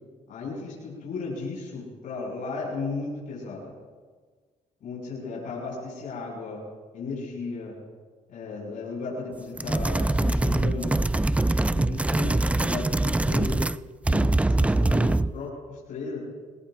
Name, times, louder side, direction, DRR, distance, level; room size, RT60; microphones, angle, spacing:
voice 1, 0.3-3.7 4.8-6.7 6.9-7.7 8.3-11.1 11.7-13.6 14.1-14.3 14.6-16.2, left 3 dB, 80° left, -3 dB, 6.2 m, -35 dB
sound 1, 9.6-13.8 14.0-15.4, right 2 dB, 10° right, 0.4 m, -23 dB
27.0 x 19.0 x 2.6 m, 1.5 s
cardioid pair, 85°, 14 cm